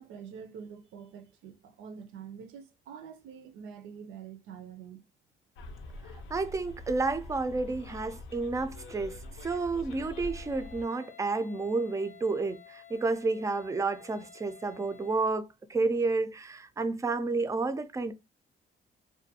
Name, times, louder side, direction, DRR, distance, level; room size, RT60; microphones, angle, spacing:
voice 1, 0.0-5.0, right 7 dB, 85° right, 0.5 m, -46 dB
Bus, 5.6-10.8, left 2 dB, 85° left, 0.5 m, -44 dB
voice 2, 6.3-9.2 9.4-18.1, right 3 dB, 15° right, 0.3 m, -30 dB
Wind instrument woodwind instrument, 10.0-15.4, left 9 dB, 35° left, 0.6 m, -53 dB
2.4 x 2.2 x 2.6 m
cardioid pair, 90°, 20 cm